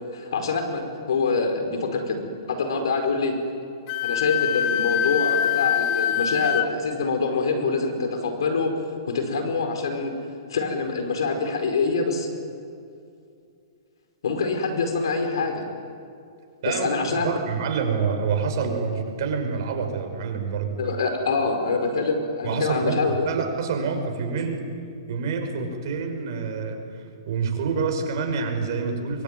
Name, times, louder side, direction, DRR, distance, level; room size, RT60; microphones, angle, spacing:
voice 1, 0.1-2.2 2.5-3.3 4.0-8.7 9.1-10.1 10.5-12.3 14.2-15.6 16.6-17.3 20.8-23.3, left 4 dB, 75° left, 5 dB, 5.0 m, -25 dB
Wind instrument woodwind instrument, 3.9-6.7, left 10 dB, 40° left, 1.2 m, -24 dB
voice 2, 17.1-20.7 22.4-24.6 25.1-29.2, right 5 dB, 55° right, 4 dB, 5.3 m, -27 dB
24.0 x 23.0 x 9.2 m, 2.4 s
hypercardioid pair, 125°, 2 cm